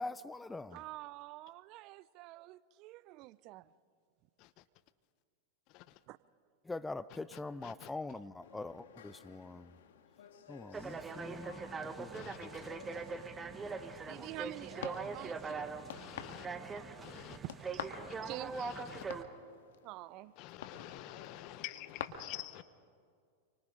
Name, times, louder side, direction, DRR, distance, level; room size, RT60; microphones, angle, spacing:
voice 1, 0.0-0.8 6.6-9.7 10.5-12.7, left 2 dB, 10° left, 0.6 m, -44 dB
voice 2, 0.7-3.7 6.1-6.2 14.0-15.9 17.7-17.9 18.2-18.7 19.8-20.3, right 17 dB, 50° right, 0.6 m, -48 dB
voice 3, 5.7-6.0 7.1-7.9 12.1-12.8 15.5-17.4 18.1-18.2 18.5-19.1 20.4-22.6, left 16 dB, 50° left, 1.0 m, -49 dB
sound 1, 8.4-22.0, left 9 dB, 70° left, 1.9 m, -50 dB
sound 2, 10.7-19.2, right 4 dB, 20° right, 1.3 m, -42 dB
28.5 x 25.0 x 3.9 m
hypercardioid pair, 105°, 0 cm